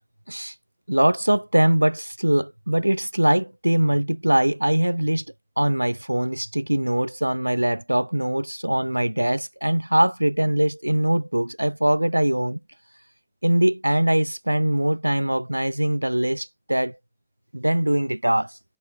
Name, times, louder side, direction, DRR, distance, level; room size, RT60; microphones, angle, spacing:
voice 1, 0.9-5.2 5.6-12.6 13.4-17.0 17.5-18.5, right 1 dB, 90° right, 2.0 m, -22 dB
figure-of-eight pair, 90°, 0 cm